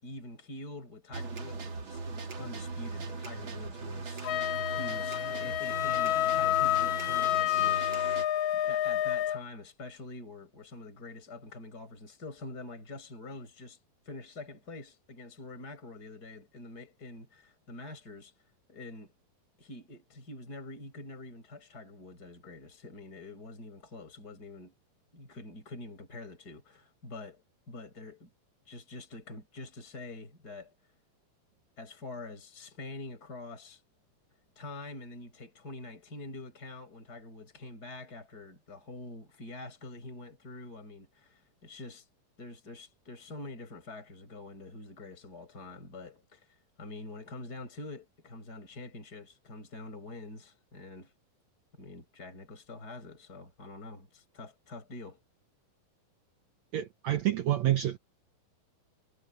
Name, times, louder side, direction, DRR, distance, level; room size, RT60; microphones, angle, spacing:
voice 1, 0.0-8.2 8.5-13.8 14.0-18.3 18.7-19.1 19.6-24.7 25.1-28.3 28.6-30.7 31.8-33.8 34.6-42.1 42.4-51.1 51.7-55.2, left 2 dB, 25° left, 6.5 m, -46 dB
sound 1, 1.1-8.3, right 3 dB, 40° right, 2.6 m, -39 dB
Wind instrument woodwind instrument, 4.2-9.4, left 13 dB, 90° left, 3.7 m, -29 dB
voice 2, 56.7-58.0, right 13 dB, 75° right, 1.6 m, -28 dB
omnidirectional pair, 4.3 m